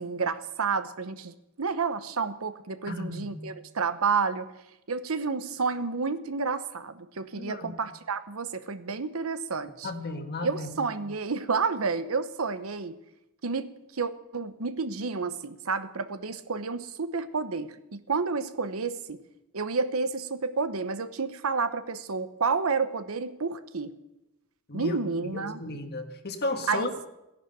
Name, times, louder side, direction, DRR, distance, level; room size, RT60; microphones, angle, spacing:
voice 1, 0.0-4.5 4.9-9.9 10.4-12.9 13.4-19.2 19.5-23.9 24.7-25.6 26.7-26.9, right 4 dB, 70° right, 12 dB, 0.9 m, -30 dB
voice 2, 2.9-3.3 7.4-7.7 9.8-10.7 24.7-25.0 25.2-27.1, left 2 dB, 50° left, 7 dB, 1.6 m, -34 dB
14.5 x 11.0 x 7.9 m, 0.91 s
head